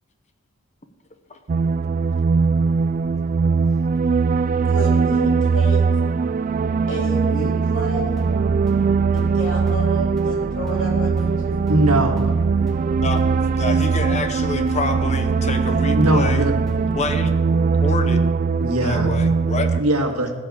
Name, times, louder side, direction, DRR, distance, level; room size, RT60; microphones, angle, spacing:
sound 1, 1.5-19.8, right 5 dB, 35° right, 0.3 m, -20 dB
voice 1, 4.7-5.9 6.9-8.2 9.1-11.6, right 1 dB, 60° left, -1 dB, 3.2 m, -31 dB
sound 2, 7.9-17.2, right 1 dB, ahead, 2.0 m, -35 dB
voice 2, 11.7-12.2 15.9-16.5 18.6-19.1 19.8-20.3, right 1 dB, 85° right, 4 dB, 1.8 m, -20 dB
voice 3, 13.5-16.5 16.9-17.3 17.8-18.3 18.8-19.8, left 3 dB, 30° left, 8 dB, 0.8 m, -27 dB
14.5 x 5.8 x 8.5 m, 1.3 s
head